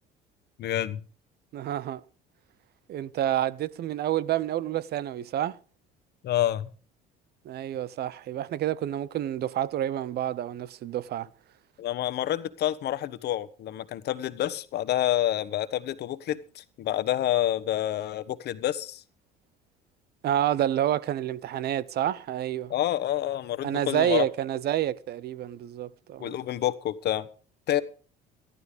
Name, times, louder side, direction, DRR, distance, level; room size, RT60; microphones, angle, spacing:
voice 1, 0.6-1.0 6.2-6.7 11.8-19.0 22.7-24.2 26.2-27.3 27.7-27.8, left 12 dB, 55° left, 1.2 m, -28 dB
voice 2, 1.5-2.0 2.9-5.6 7.4-11.3 20.2-22.7 23.6-26.4, right 11 dB, 55° right, 0.9 m, -29 dB
14.0 x 12.0 x 5.2 m
hypercardioid pair, 70°, 20 cm